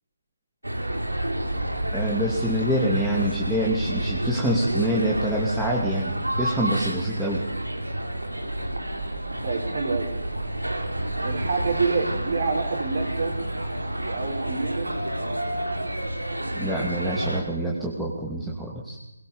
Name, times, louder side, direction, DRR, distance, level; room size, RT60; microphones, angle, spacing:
sound 1, 0.6-17.4, right 1 dB, 85° right, 4.5 m, -29 dB
voice 1, 1.9-7.4 16.5-19.0, right 1 dB, 5° right, -5 dB, 2.8 m, -26 dB
voice 2, 9.4-10.1 11.2-13.4 14.0-14.9, right 4 dB, 45° right, 2 dB, 5.7 m, -27 dB
23.0 x 21.0 x 7.3 m, 0.98 s
figure-of-eight pair, 150°, 0 cm